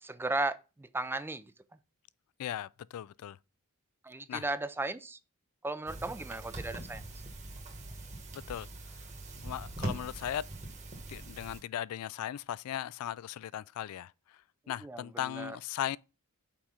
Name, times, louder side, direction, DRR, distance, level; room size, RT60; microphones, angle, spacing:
voice 1, 0.0-1.5 4.0-5.2 5.6-7.0 14.8-15.6, right 2 dB, 10° right, 0.4 m, -36 dB
voice 2, 2.4-3.4 4.3-4.4 8.3-8.7 9.3-10.5 11.1-14.4 14.7-16.0, left 11 dB, 75° left, 0.3 m, -38 dB
sound 1, 5.9-11.6, right 2 dB, 35° right, 1.6 m, -42 dB
6.0 x 4.9 x 5.6 m
head